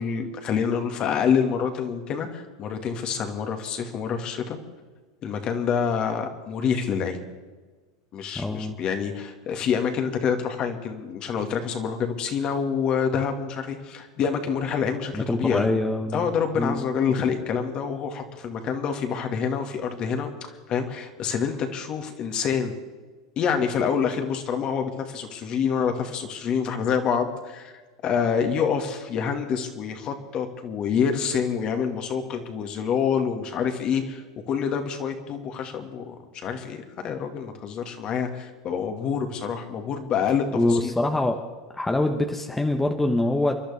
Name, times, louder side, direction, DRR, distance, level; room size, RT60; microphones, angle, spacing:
voice 1, 0.0-4.6 5.2-7.2 8.1-15.7 16.1-22.7 23.4-27.7 28.0-40.9, left 7 dB, 40° left, 5 dB, 2.2 m, -27 dB
voice 2, 8.3-8.8 15.1-16.8 40.5-41.4 41.7-43.6, left 2 dB, 10° left, 4 dB, 1.2 m, -24 dB
29.5 x 11.5 x 3.6 m, 1.4 s
hypercardioid pair, 95°, 2 cm